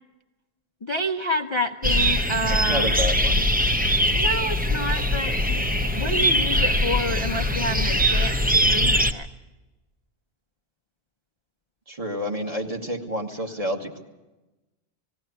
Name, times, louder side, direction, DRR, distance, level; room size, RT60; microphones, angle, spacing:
voice 1, 0.8-2.9 4.1-5.6 6.0-9.3, equal, 30° left, 3 dB, 0.6 m, -29 dB
sound 1, 1.8-9.1, equal, 10° right, 0.6 m, -22 dB
voice 2, 2.5-3.5 11.9-14.0, equal, 35° right, 1 dB, 1.8 m, -29 dB
19.0 x 16.0 x 9.4 m, 1.1 s
omnidirectional pair, 1.1 m